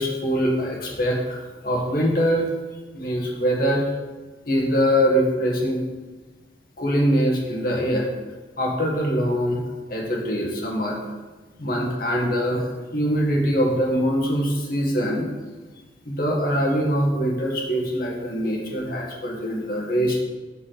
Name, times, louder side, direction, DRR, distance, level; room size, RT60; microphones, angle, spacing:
voice 1, 0.0-2.5 2.9-3.8 4.5-5.8 6.8-8.1 8.6-9.6 9.9-11.0 11.6-12.7 12.9-15.2 16.0-20.2, equal, 50° left, -1 dB, 1.6 m, -23 dB
5.9 x 5.4 x 6.5 m, 1.3 s
head